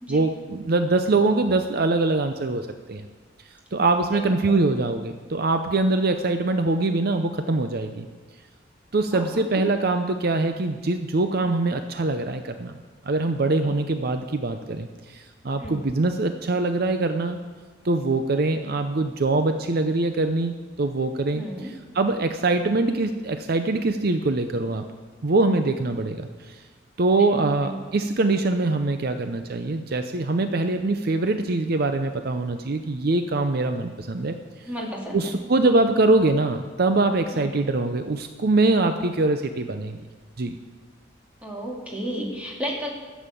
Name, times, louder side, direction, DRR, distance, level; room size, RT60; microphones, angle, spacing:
voice 1, 0.1-3.0 3.7-8.1 8.9-12.8 13.1-17.4 17.8-21.4 21.9-24.8 25.2-26.6 27.0-34.4 35.1-40.0 40.4-40.6, right 2 dB, 50° right, 7 dB, 0.6 m, -23 dB
voice 2, 4.1-4.6 9.1-9.6 13.6-13.8 15.6-15.8 21.3-21.7 27.2-27.3 27.5-27.8 34.6-35.4 37.3-37.6 41.4-42.9, equal, 5° right, -2 dB, 2.2 m, -33 dB
12.5 x 7.2 x 8.3 m, 1.4 s
head